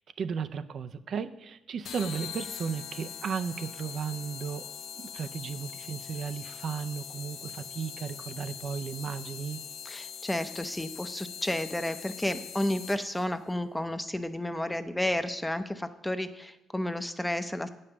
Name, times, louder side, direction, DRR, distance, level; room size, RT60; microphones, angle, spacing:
voice 1, 0.2-9.6, right 6 dB, 60° right, 11 dB, 0.5 m, -35 dB
sound 1, 1.8-13.3, left 8 dB, 75° left, 0.6 m, -42 dB
voice 2, 9.9-17.7, left 1 dB, 10° left, 10 dB, 0.6 m, -32 dB
8.2 x 5.4 x 6.8 m, 0.90 s
cardioid pair, 90°, 0 cm